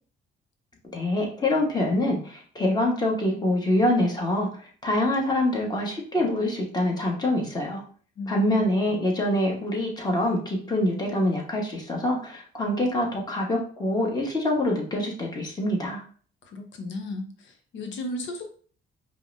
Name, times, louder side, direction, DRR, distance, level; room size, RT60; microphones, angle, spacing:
voice 1, 0.9-4.5 4.8-7.8 8.3-16.0, left 1 dB, 20° left, -1 dB, 1.2 m, -25 dB
voice 2, 8.2-9.0 16.4-18.5, left 2 dB, 70° left, 4 dB, 0.8 m, -35 dB
5.2 x 2.1 x 2.6 m, 0.43 s
cardioid pair, 90°, 20 cm